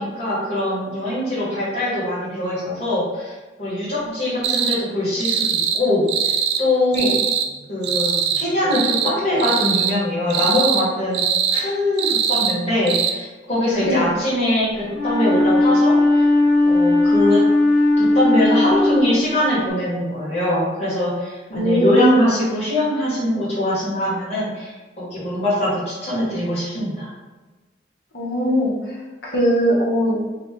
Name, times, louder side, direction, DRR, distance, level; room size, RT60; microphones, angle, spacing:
voice 1, 0.0-7.1 7.7-11.2 11.5-16.2 16.6-17.4 18.0-27.1, left 1 dB, 35° left, -8 dB, 1.4 m, -22 dB
sound 1, 4.4-4.8 5.2-5.8 6.1-6.6 6.9-7.5 7.8-8.5 8.7-9.1 9.4-9.9 10.3-10.8 11.1-11.6 12.0-12.6 12.9-13.1, right 7 dB, 70° right, 0.4 m, -21 dB
Wind instrument woodwind instrument, 14.9-19.6, left 2 dB, ahead, 1.5 m, -17 dB
voice 2, 21.5-22.2 28.1-28.7 29.2-30.2, right 1 dB, 65° left, -6 dB, 1.2 m, -19 dB
2.9 x 2.7 x 3.6 m, 1.2 s
head